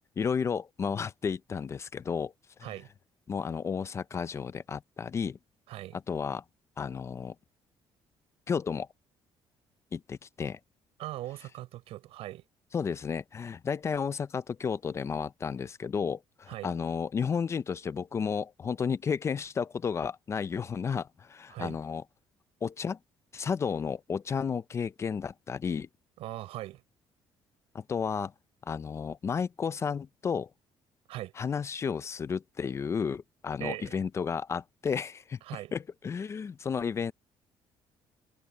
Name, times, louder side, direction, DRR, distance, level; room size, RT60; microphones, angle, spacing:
voice 1, 0.2-2.3 3.3-5.4 5.9-6.4 6.8-7.3 8.5-8.9 9.9-10.6 12.7-22.0 22.6-23.0 23.3-25.9 27.7-28.3 28.6-30.5 31.4-37.1, left 6 dB, 30° left, 0.5 m, -32 dB
voice 2, 11.0-12.4 16.5-16.7 21.5-21.8 26.2-26.8 31.1-31.3 33.6-34.0 35.4-35.7, right 15 dB, 85° right, 4.8 m, -40 dB
cardioid pair, 145°, 10 cm